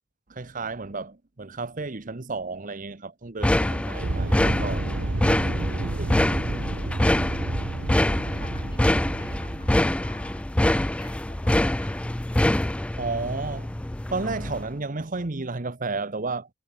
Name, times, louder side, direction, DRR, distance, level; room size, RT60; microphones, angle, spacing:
voice 1, 0.3-4.9 5.7-6.1 13.0-13.7 14.1-16.5, right 3 dB, 45° right, 1.1 m, -32 dB
sound 1, 3.4-14.7, left 1 dB, 5° left, 0.3 m, -25 dB
sound 2, 4.0-10.5, right 2 dB, 75° right, 0.9 m, -31 dB
voice 2, 7.9-12.7, left 3 dB, 25° left, 4.2 m, -50 dB
head